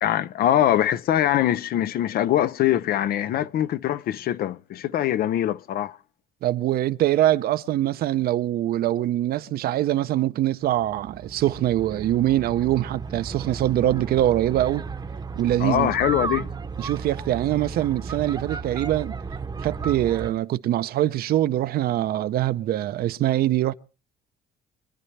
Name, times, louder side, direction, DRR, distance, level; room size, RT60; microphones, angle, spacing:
voice 1, 0.0-6.0 15.6-16.5, left 11 dB, 60° left, 0.7 m, -23 dB
voice 2, 6.4-14.9 15.3-15.9 16.8-19.1 19.6-23.7, right 13 dB, 65° right, 0.7 m, -23 dB
sound 1, 10.6-20.3, right 5 dB, 25° right, 0.9 m, -34 dB
24.5 x 11.0 x 3.3 m
cardioid pair, 110°, 17 cm